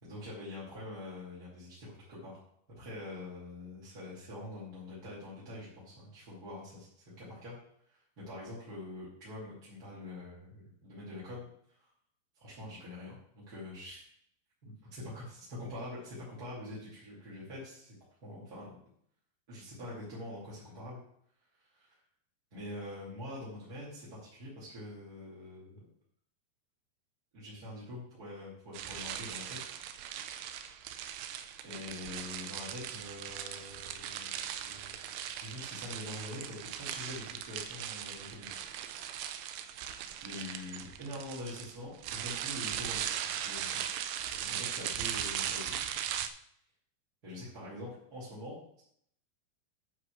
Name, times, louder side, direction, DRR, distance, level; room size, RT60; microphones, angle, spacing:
voice 1, 0.0-2.4 2.8-7.6 7.9-11.9 12.3-14.0 14.6-17.9 18.2-18.8 19.5-21.0 21.6-22.0 22.5-25.8 27.3-29.7 31.6-38.6 40.2-43.8 44.4-45.9 47.2-48.8, left 1 dB, 25° right, -9 dB, 2.5 m, -45 dB
sound 1, 28.7-46.3, right 10 dB, 80° right, 2.7 m, -39 dB
9.9 x 4.8 x 6.4 m, 0.67 s
omnidirectional pair, 4.8 m